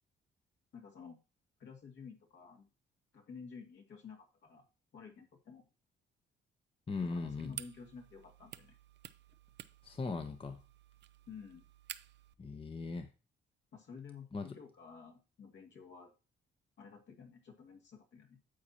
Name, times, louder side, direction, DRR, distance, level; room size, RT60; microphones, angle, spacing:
voice 1, 0.7-1.2 1.6-2.7 3.1-4.6 4.9-5.7 7.0-8.8 11.3-11.7 13.7-16.1 16.8-18.4, left 6 dB, 65° left, 2 dB, 2.5 m, -52 dB
voice 2, 6.9-7.6 9.8-10.6 12.4-13.1 14.3-14.5, left 4 dB, 25° left, 6 dB, 0.9 m, -39 dB
sound 1, 6.9-12.3, right 12 dB, 65° right, 0.5 m, -52 dB
9.4 x 7.3 x 2.9 m, 0.30 s
cardioid pair, 90°, 20 cm